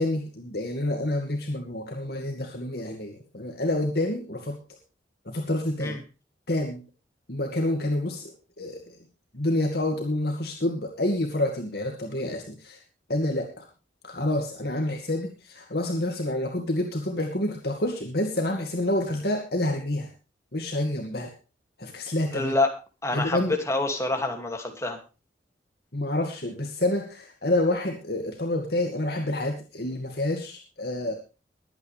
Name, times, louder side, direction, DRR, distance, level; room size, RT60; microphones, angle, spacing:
voice 1, 0.0-4.6 5.3-6.0 6.5-6.8 7.3-9.0 9.3-12.8 13.1-13.7 14.0-20.1 20.5-21.3 21.8-22.5 23.1-23.5 25.9-31.1, left 1 dB, 60° left, 2 dB, 2.3 m, -28 dB
voice 2, 22.3-22.7 23.0-25.0, left 2 dB, 15° left, 3 dB, 2.5 m, -27 dB
22.0 x 9.0 x 3.5 m, 0.32 s
head